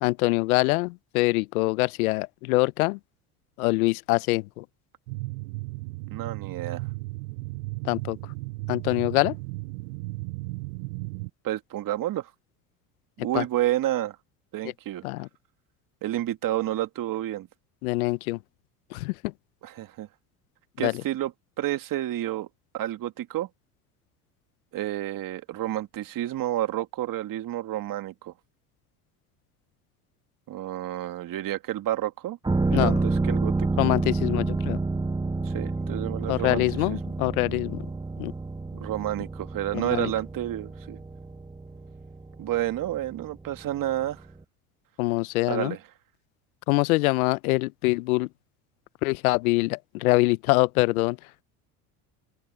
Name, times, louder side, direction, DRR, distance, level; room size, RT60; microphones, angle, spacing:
voice 1, 0.0-3.0 3.6-4.6 7.8-8.2 8.7-9.3 13.3-13.4 15.0-15.3 17.8-18.4 18.9-19.3 20.8-20.9 32.7-33.0 33.8-34.8 36.3-37.8 38.2-38.3 39.7-40.1 45.0-45.7 46.7-48.3 49.0-51.2, left 22 dB, 80° left, 0.7 m, -24 dB
sound 1, 5.1-11.3, right 23 dB, 75° right, 0.7 m, -35 dB
voice 2, 6.1-6.8 11.4-12.3 13.2-14.2 14.5-15.0 16.0-17.5 19.6-20.1 20.8-21.3 21.6-22.5 22.7-23.5 24.7-28.3 30.5-32.4 32.7-33.8 35.5-37.0 38.8-41.0 42.4-44.2 45.5-45.8, right 13 dB, 50° right, 2.1 m, -30 dB
sound 2, 32.4-44.0 44.3-44.4, right 3 dB, 10° right, 1.1 m, -29 dB
open air
hypercardioid pair, 80°, 43 cm